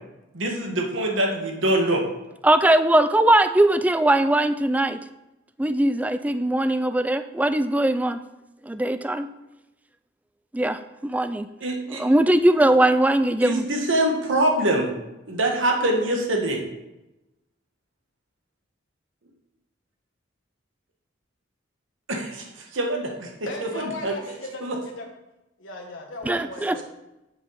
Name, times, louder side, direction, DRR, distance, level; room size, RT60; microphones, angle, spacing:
voice 1, 0.3-2.0 11.6-12.0 13.4-14.9 15.3-16.6 22.1-23.3 24.0-24.1 24.6-24.8, right 1 dB, 75° right, 2 dB, 1.5 m, -24 dB
voice 2, 2.4-5.0 5.6-8.2 8.6-9.3 10.5-11.5 11.9-13.7 26.3-26.8, right 1 dB, 10° right, 11 dB, 0.3 m, -20 dB
voice 3, 23.4-25.0 25.6-26.8, left 2 dB, 75° left, -1 dB, 1.4 m, -37 dB
8.0 x 5.3 x 5.6 m, 0.96 s
head